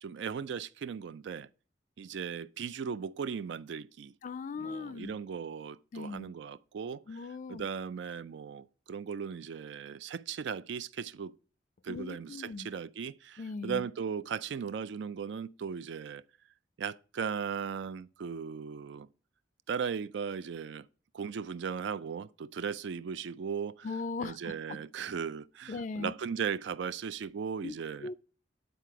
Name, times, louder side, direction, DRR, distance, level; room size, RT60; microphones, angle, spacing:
voice 1, 0.0-1.5 2.0-4.1 4.6-7.0 7.5-11.3 11.8-16.2 16.8-19.1 19.7-20.9 21.1-23.9 24.2-28.1, right 6 dB, 65° right, 0.4 m, -37 dB
voice 2, 4.2-5.1 5.9-6.3 7.1-7.7 11.9-12.7 13.4-13.8 23.8-24.8 25.7-26.1 27.6-27.7 28.0-28.1, left 4 dB, 45° left, 0.4 m, -39 dB
9.2 x 4.1 x 4.6 m
head